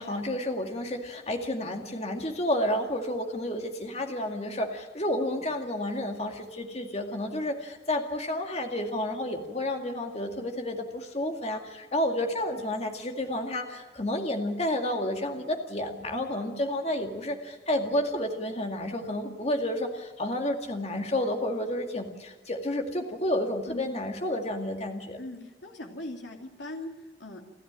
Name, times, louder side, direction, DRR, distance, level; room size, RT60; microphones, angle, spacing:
voice 1, 0.0-25.2, left 1 dB, 35° left, 4 dB, 2.1 m, -30 dB
voice 2, 25.2-27.6, left 1 dB, 75° left, 2 dB, 2.8 m, -40 dB
30.0 x 12.0 x 8.8 m, 1.3 s
head